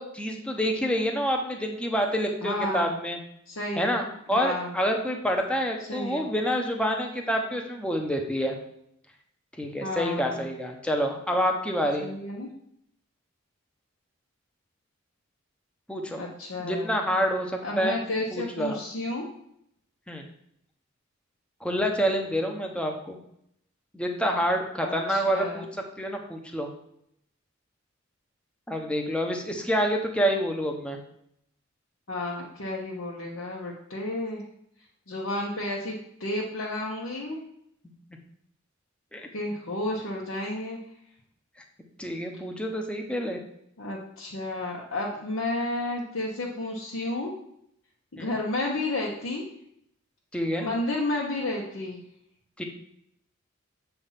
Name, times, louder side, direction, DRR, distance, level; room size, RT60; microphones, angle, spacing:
voice 1, 0.0-3.2 3.8-8.6 9.6-12.1 15.9-16.2 16.6-18.0 18.3-18.8 20.1-20.3 21.6-23.2 23.9-25.6 26.0-26.7 28.7-31.0 39.1-39.3 42.0-43.4 48.2-48.3 50.3-50.7 52.6-52.7, equal, 5° left, 2 dB, 0.8 m, -27 dB
voice 2, 2.4-2.9 3.5-4.0 4.3-4.7 5.9-6.3 9.8-10.4 12.0-12.5 16.2-16.9 17.6-19.3 24.8-25.6 32.1-34.4 35.1-35.9 36.2-37.4 39.3-40.8 43.8-47.3 48.1-49.4 50.6-52.0, left 2 dB, 70° left, -4 dB, 1.0 m, -31 dB
7.1 x 3.4 x 5.7 m, 0.74 s
head